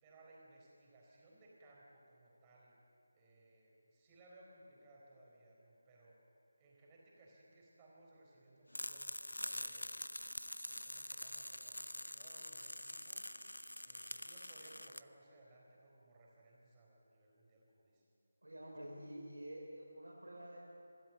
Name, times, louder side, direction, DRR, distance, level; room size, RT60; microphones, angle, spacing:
voice 1, 0.0-2.8 3.1-6.2 6.6-10.1 10.7-13.2 13.8-18.0, right 2 dB, 15° right, -3 dB, 4.2 m, -63 dB
sound 1, 8.7-15.0, left 1 dB, 85° left, 0.7 m, -45 dB
voice 2, 18.4-20.6, right 1 dB, 75° right, -3 dB, 4.1 m, -49 dB
24.5 x 13.5 x 8.3 m, 2.8 s
figure-of-eight pair, 160°, 0 cm